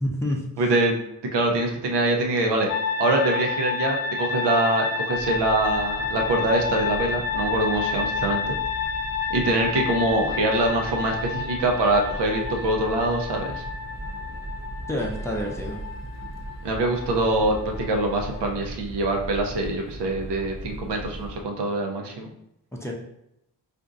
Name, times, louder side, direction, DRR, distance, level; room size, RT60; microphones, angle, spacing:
voice 1, 0.0-0.4 14.9-15.8 22.7-22.9, equal, 5° left, -2 dB, 0.5 m, -28 dB
voice 2, 0.6-1.0 1.3-2.7 3.0-8.6 9.3-13.6 16.6-22.3, right 2 dB, 85° right, 2 dB, 0.7 m, -24 dB
sound 1, 2.7-18.4, left 5 dB, 60° left, 0.6 m, -30 dB
sound 2, 5.1-21.4, right 1 dB, 40° right, 0.8 m, -38 dB
4.3 x 2.5 x 2.5 m, 0.82 s
cardioid pair, 85°, 40 cm